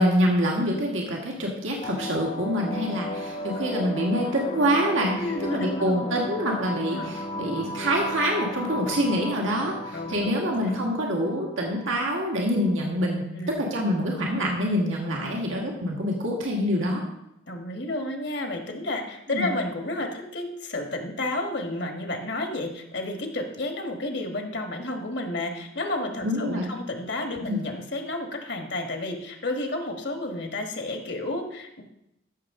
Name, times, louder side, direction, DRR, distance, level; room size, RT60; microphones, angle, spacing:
voice 1, 0.0-5.2 5.5-17.0 19.3-19.5 26.2-26.7 27.5-27.6, equal, 80° right, -1 dB, 1.7 m, -26 dB
sound 1, 1.8-12.8, left 1 dB, 35° left, 0.9 m, -35 dB
voice 2, 5.2-6.2 6.9-7.1 9.9-10.3 13.3-13.6 15.1-15.4 17.5-31.8, left 2 dB, 60° left, 3 dB, 1.5 m, -31 dB
14.0 x 6.5 x 3.7 m, 0.84 s
head